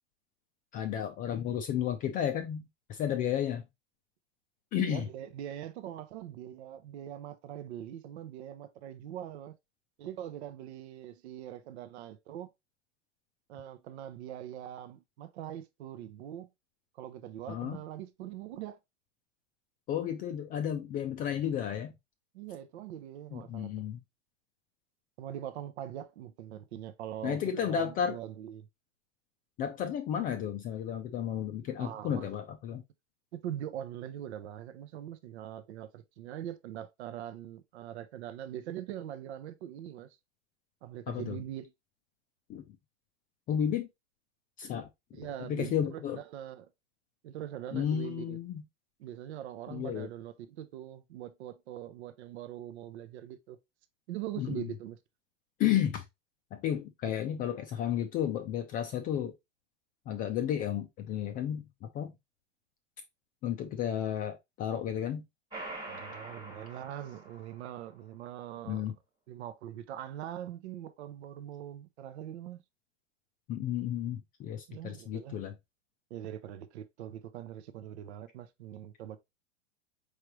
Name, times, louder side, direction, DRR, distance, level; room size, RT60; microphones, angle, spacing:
voice 1, 0.7-3.7 4.7-5.0 17.5-17.8 19.9-21.9 23.3-24.0 27.2-28.2 29.6-32.8 41.1-41.4 42.5-42.6 43.5-43.9 44.6-44.9 45.4-46.2 47.7-48.6 49.7-50.1 54.4-54.7 55.6-56.0 56.5-59.3 60.1-62.1 63.4-65.2 68.7-68.9 73.5-75.5, left 9 dB, 25° left, 0.4 m, -32 dB
voice 2, 4.8-9.5 10.0-12.5 13.5-16.5 16.9-18.8 22.3-23.9 25.2-28.7 31.8-32.3 33.3-40.2 40.8-41.7 45.1-46.7 47.2-48.4 49.0-53.6 54.1-55.0 65.9-68.9 69.3-72.6 74.7-75.4 76.1-79.2, right 11 dB, 60° right, 0.7 m, -42 dB
sound 1, 65.5-67.9, right 2 dB, 10° right, 1.5 m, -44 dB
4.9 x 3.3 x 2.9 m
hypercardioid pair, 110°, 37 cm